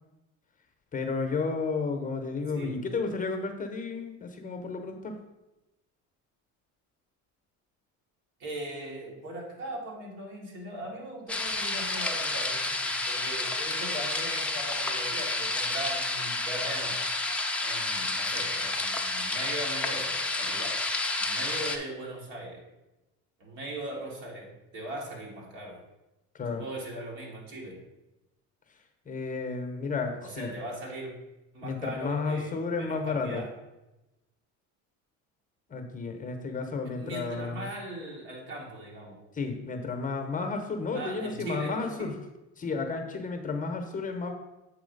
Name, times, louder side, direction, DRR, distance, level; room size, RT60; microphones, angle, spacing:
voice 1, 0.9-5.2 26.3-26.6 29.1-30.5 31.6-33.4 35.7-37.7 39.3-42.1 42.6-44.3, left 4 dB, 20° left, 5 dB, 0.8 m, -32 dB
voice 2, 8.4-17.0 17.6-20.8 21.2-22.6 23.4-25.8 26.5-27.8 30.2-31.1 31.5-33.5 36.8-39.2 40.9-42.2, right 1 dB, 70° right, -2 dB, 2.3 m, -39 dB
sound 1, 11.3-21.8, left 2 dB, 5° left, 0.4 m, -30 dB
7.6 x 3.0 x 5.2 m, 0.99 s
cardioid pair, 120°, 36 cm